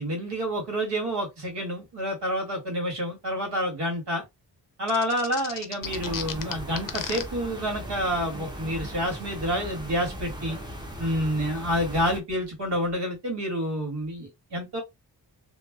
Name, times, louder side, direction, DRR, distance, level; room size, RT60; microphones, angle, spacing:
voice 1, 0.0-4.2 4.8-10.6 11.0-14.8, equal, 75° right, 1.9 m, -28 dB
sound 1, 4.9-7.2, left 8 dB, 55° left, 0.5 m, -33 dB
sound 2, 5.8-12.2, equal, 10° right, 0.7 m, -38 dB
3.2 x 2.7 x 2.3 m
wide cardioid pair, 130°, 42 cm